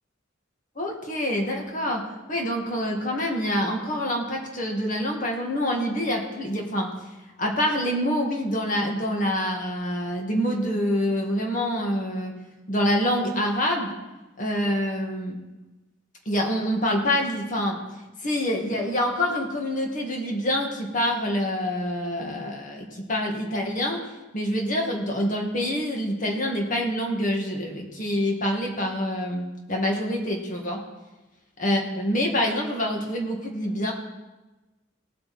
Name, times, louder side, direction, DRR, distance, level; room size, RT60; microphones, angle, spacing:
voice 1, 0.8-6.9 7.4-12.3 12.7-13.9 14.4-15.4 16.3-17.8 18.2-24.1 24.3-30.8 31.6-33.9, equal, 45° left, 1 dB, 2.1 m, -26 dB
18.0 x 8.0 x 4.4 m, 1.1 s
head